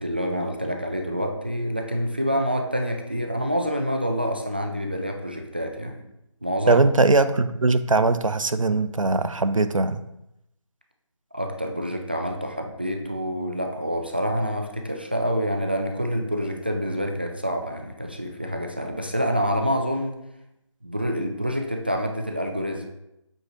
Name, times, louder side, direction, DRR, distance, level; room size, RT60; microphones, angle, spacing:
voice 1, 0.0-6.0 6.4-6.8 11.3-20.2 20.8-22.9, equal, 20° right, 3 dB, 0.4 m, -27 dB
voice 2, 6.7-10.0, right 3 dB, 85° right, 11 dB, 0.7 m, -20 dB
7.7 x 4.6 x 2.8 m, 0.87 s
figure-of-eight pair, 160°, 16 cm